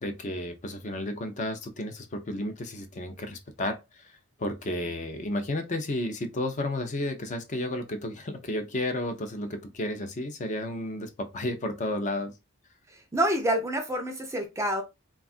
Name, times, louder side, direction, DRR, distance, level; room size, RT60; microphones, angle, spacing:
voice 1, 0.0-12.3, left 1 dB, 35° left, 0.5 m, -32 dB
voice 2, 13.1-14.8, right 1 dB, 15° right, 0.5 m, -27 dB
3.5 x 2.3 x 2.4 m
head